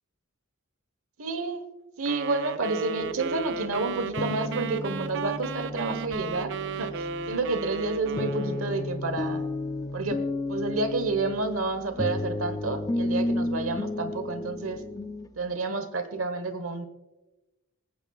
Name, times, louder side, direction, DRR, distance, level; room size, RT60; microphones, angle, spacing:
voice 1, 1.2-1.7 2.0-9.5 9.9-10.2 10.5-14.8 15.4-16.9, right 3 dB, 75° right, 9 dB, 1.2 m, -30 dB
sound 1, 2.1-9.0, right 5 dB, 60° right, 0.5 m, -35 dB
sound 2, 3.0-15.3, left 2 dB, 15° left, 0.4 m, -33 dB
27.0 x 9.0 x 2.4 m, 1.0 s
head